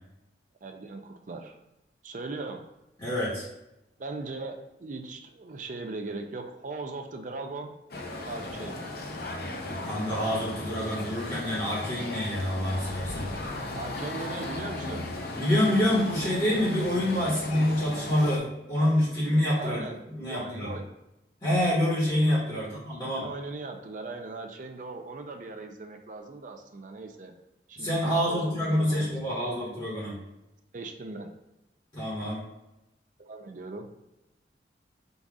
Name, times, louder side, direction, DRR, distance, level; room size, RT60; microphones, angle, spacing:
voice 1, 0.6-1.5 2.0-2.6 4.0-7.7 8.3-8.8 13.5-15.1 17.1-17.5 19.6-20.9 22.5-27.3 27.7-29.3 30.7-31.3 33.2-33.9, right 3 dB, 45° right, 4 dB, 0.5 m, -39 dB
voice 2, 3.0-3.5 9.7-13.3 15.3-19.8 20.2-20.7 21.4-23.3 27.8-30.2 31.9-32.4, left 1 dB, 25° left, -7 dB, 1.2 m, -27 dB
sound 1, 7.9-18.4, left 2 dB, 60° left, 0.7 m, -36 dB
4.0 x 2.4 x 4.6 m, 0.93 s
head